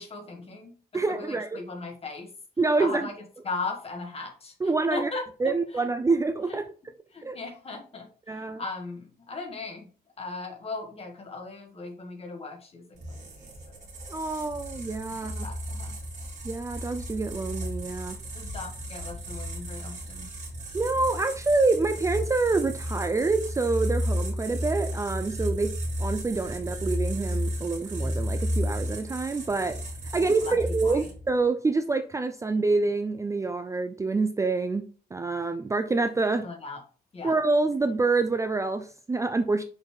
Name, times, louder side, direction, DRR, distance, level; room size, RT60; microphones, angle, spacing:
voice 1, 0.0-2.3 2.8-3.1 3.4-4.5 4.9-5.9 6.5-6.6 7.1-9.9 10.2-13.8 14.3-14.4 15.1-16.0 18.3-20.3 30.1-31.1 36.4-36.8 37.1-37.4, left 3 dB, 35° left, 3 dB, 1.8 m, -38 dB
voice 2, 0.9-1.6 2.6-3.1 4.6-5.1 5.4-6.7 7.2-7.4 8.3-8.6 14.1-15.5 16.4-18.2 20.7-25.7 26.0-29.8 30.1-34.9 35.1-36.5 37.2-39.6, right 3 dB, 20° right, 8 dB, 0.4 m, -26 dB
sound 1, 13.0-31.3, equal, 45° right, 2.3 m, -33 dB
6.2 x 4.2 x 4.8 m, 0.39 s
wide cardioid pair, 175°, 17 cm